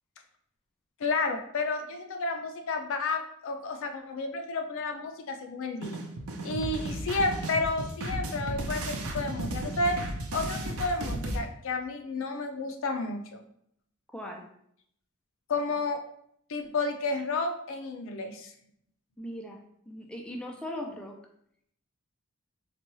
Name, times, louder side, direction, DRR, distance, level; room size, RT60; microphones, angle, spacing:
voice 1, 1.0-6.0 6.4-10.0 10.3-13.4 15.5-16.0 16.5-18.5, left 3 dB, 65° left, 5 dB, 0.4 m, -31 dB
sound 1, 5.8-11.4, right 1 dB, 75° right, 0.6 m, -34 dB
voice 2, 14.1-14.4 19.2-21.2, left 1 dB, 5° left, 1 dB, 0.3 m, -39 dB
3.9 x 2.3 x 3.0 m, 0.70 s
head